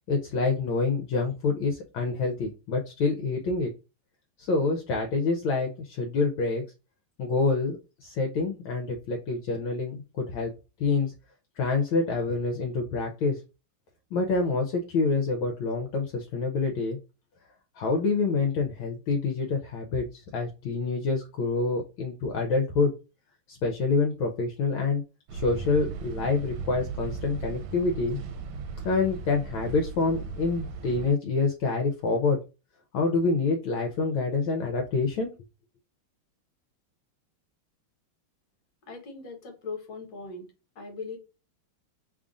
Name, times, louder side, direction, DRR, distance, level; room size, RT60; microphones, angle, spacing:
voice 1, 0.1-3.7 4.4-6.6 7.2-10.5 10.8-11.1 11.6-13.4 14.1-17.0 17.8-22.9 23.5-25.0 25.3-28.2 28.8-32.4 32.9-35.3, left 4 dB, 75° left, 3 dB, 1.3 m, -27 dB
sound 1, 25.3-31.1, right 5 dB, 80° right, 1.4 m, -37 dB
voice 2, 38.9-40.5 40.7-41.2, left 4 dB, 50° left, 3 dB, 1.5 m, -39 dB
3.5 x 2.4 x 3.8 m, 0.30 s
omnidirectional pair, 2.4 m